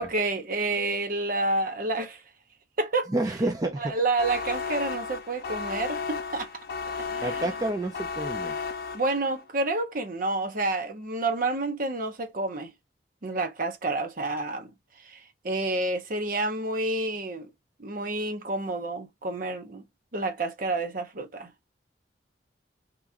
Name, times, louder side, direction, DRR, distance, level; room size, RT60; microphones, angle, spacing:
voice 1, 0.0-2.2 2.8-3.1 3.8-6.5 7.1-7.4 8.9-12.7 13.2-14.7 15.0-15.2 15.4-17.5 17.8-19.8 20.1-21.5, right 2 dB, 50° right, 0.8 m, -29 dB
voice 2, 3.1-3.9 7.2-8.5, right 2 dB, 20° right, 0.5 m, -29 dB
sound 1, 4.2-9.4, left 5 dB, 60° left, 0.5 m, -34 dB
2.9 x 2.6 x 3.6 m
head